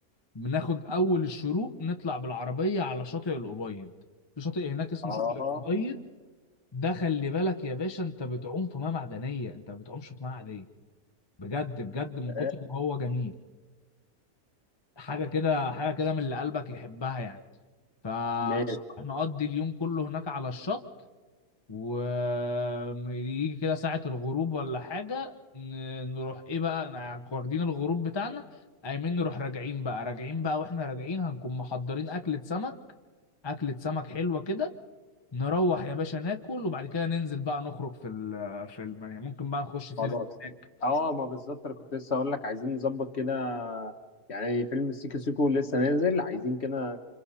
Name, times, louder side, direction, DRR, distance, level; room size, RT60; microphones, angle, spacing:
voice 1, 0.3-3.9 4.4-6.0 6.7-10.7 11.4-13.3 15.0-17.4 18.0-18.7 19.0-20.8 21.7-32.7 33.4-34.7 35.3-40.1 40.4-40.5, left 3 dB, 20° left, 4 dB, 0.8 m, -32 dB
voice 2, 5.0-5.8 12.3-12.5 18.4-18.8 40.0-40.3 40.8-43.9 44.3-47.0, left 3 dB, 45° left, 6 dB, 1.5 m, -29 dB
29.5 x 26.5 x 4.3 m, 1.4 s
omnidirectional pair, 1.6 m